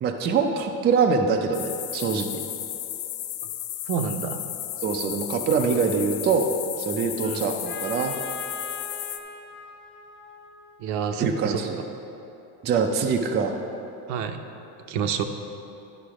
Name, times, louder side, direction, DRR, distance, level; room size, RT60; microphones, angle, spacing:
voice 1, 0.0-2.3 4.8-8.1 11.2-11.8 12.6-13.5, right 5 dB, 25° right, 3 dB, 0.4 m, -24 dB
sound 1, 1.5-9.2, left 12 dB, 70° left, 0.7 m, -34 dB
voice 2, 3.9-4.4 7.2-7.4 10.8-11.6 14.1-14.4 14.9-15.2, right 7 dB, 65° right, 6 dB, 0.8 m, -28 dB
Trumpet, 7.6-11.4, left 3 dB, 35° left, 1.2 m, -41 dB
10.5 x 5.9 x 4.8 m, 2.9 s
cardioid pair, 140°, 43 cm